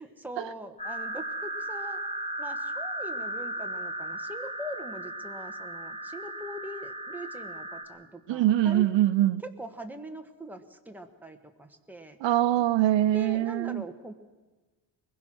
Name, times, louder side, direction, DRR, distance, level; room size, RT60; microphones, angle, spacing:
voice 1, 0.0-2.0 2.4-8.9 9.6-12.2 13.1-14.1, equal, 5° right, 5 dB, 1.3 m, -42 dB
sound 1, 0.8-7.8, right 1 dB, 15° left, 2.0 m, -36 dB
voice 2, 8.3-9.4 12.2-13.8, right 13 dB, 80° right, 14 dB, 0.7 m, -23 dB
22.0 x 21.0 x 6.2 m, 1.2 s
wide cardioid pair, 155°, 44 cm